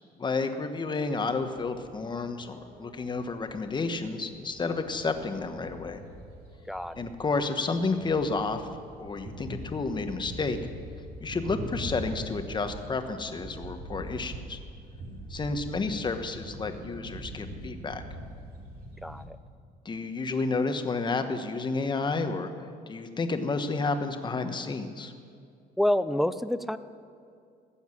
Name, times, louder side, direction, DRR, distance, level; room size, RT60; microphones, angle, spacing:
voice 1, 0.2-6.0 7.0-8.7 9.0-10.6 11.2-14.6 15.3-18.0 19.8-22.5 22.9-25.1, left 3 dB, 25° left, 7 dB, 1.2 m, -31 dB
sound 1, 1.2-19.3, right 1 dB, 65° right, 2.7 m, -43 dB
voice 2, 19.0-19.4 25.8-26.8, left 1 dB, ahead, 12 dB, 0.4 m, -27 dB
15.5 x 7.2 x 9.8 m, 2.3 s
cardioid pair, 110°, 17 cm